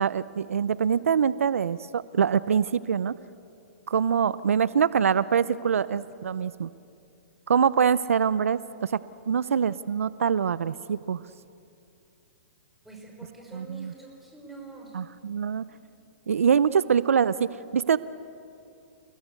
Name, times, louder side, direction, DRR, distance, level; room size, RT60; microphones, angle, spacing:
voice 1, 0.0-3.1 3.9-6.7 7.5-9.0 9.3-11.2 13.5-13.9 14.9-15.6 16.3-18.0, right 7 dB, 85° right, 17 dB, 0.6 m, -24 dB
voice 2, 12.8-15.0, right 3 dB, ahead, -1 dB, 5.5 m, -45 dB
29.0 x 19.0 x 8.2 m, 2.7 s
hypercardioid pair, 135°, 7 cm